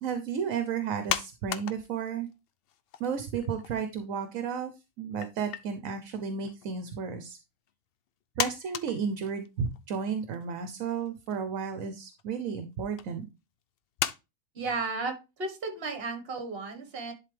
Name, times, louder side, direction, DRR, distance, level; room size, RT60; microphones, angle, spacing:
voice 1, 0.0-2.3 3.0-4.7 5.0-7.4 8.4-13.3, right 6 dB, 70° right, 9 dB, 1.2 m, -33 dB
sound 1, 1.1-2.3 2.7-3.9 4.2-4.3 5.2-5.7 6.4-6.9 7.7-7.8 8.4-9.8 10.3-10.4 10.9-11.4 12.2-12.4 13.0-13.1 14.0-14.2, left 10 dB, 65° left, 0.6 m, -34 dB
voice 2, 14.6-17.1, right 3 dB, 45° right, 5 dB, 1.7 m, -34 dB
11.0 x 4.1 x 3.3 m, 0.27 s
omnidirectional pair, 1.5 m